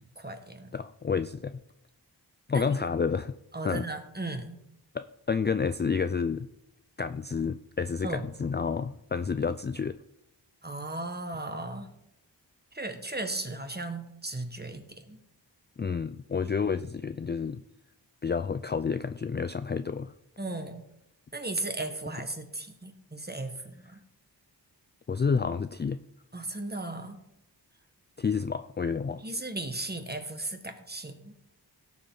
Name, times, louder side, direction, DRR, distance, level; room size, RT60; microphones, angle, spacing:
voice 1, 0.1-0.7 2.5-2.7 3.5-4.6 8.0-8.2 10.6-11.9 12.7-15.2 20.4-20.8 21.3-24.0 26.3-27.2 29.2-31.3, right 2 dB, 20° right, 6 dB, 1.6 m, -36 dB
voice 2, 0.7-1.6 2.5-3.3 3.6-3.9 4.9-6.5 7.0-10.0 15.8-17.6 18.2-20.1 25.1-26.0 28.2-29.2, left 5 dB, 25° left, 12 dB, 0.4 m, -29 dB
17.0 x 7.0 x 3.9 m, 0.81 s
wide cardioid pair, 60°, 43 cm